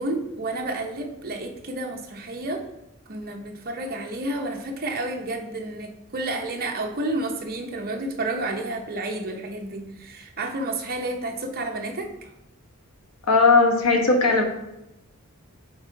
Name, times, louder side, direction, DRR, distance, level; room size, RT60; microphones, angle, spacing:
voice 1, 0.0-2.6 3.1-12.1, right 2 dB, 45° right, 2 dB, 0.9 m, -30 dB
voice 2, 13.3-14.4, left 3 dB, 75° left, 3 dB, 1.1 m, -18 dB
6.4 x 3.5 x 4.6 m, 0.93 s
head